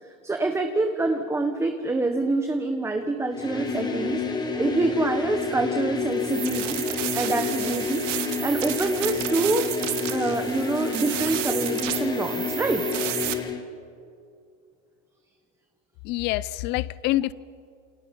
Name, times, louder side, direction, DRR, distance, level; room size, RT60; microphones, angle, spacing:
voice 1, 0.0-6.8 7.1-8.0 8.4-9.7 10.1-12.9, right 2 dB, 5° right, 6 dB, 1.1 m, -26 dB
sound 1, 3.3-13.6, left 5 dB, 10° left, 2.0 m, -29 dB
sound 2, 6.2-13.3, right 14 dB, 65° right, 2.1 m, -32 dB
voice 2, 16.0-17.3, left 16 dB, 25° left, 20 dB, 0.5 m, -26 dB
28.5 x 27.5 x 5.3 m, 2.4 s
supercardioid pair, 140°, 40 cm